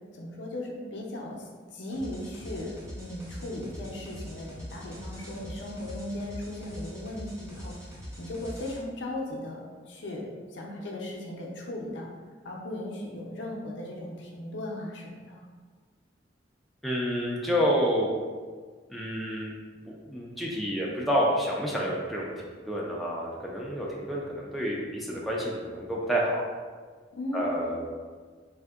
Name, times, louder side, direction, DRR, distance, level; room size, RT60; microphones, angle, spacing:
voice 1, 0.1-7.7 8.2-12.1 12.4-15.4 27.1-27.6, left 1 dB, 70° left, -2 dB, 0.5 m, -37 dB
sound 1, 1.9-8.8, equal, 15° right, 0.7 m, -43 dB
voice 2, 16.8-18.1 18.9-19.5 19.8-22.3 22.7-26.6 27.3-27.9, equal, ahead, -5 dB, 0.3 m, -29 dB
3.4 x 2.6 x 2.4 m, 1.5 s
head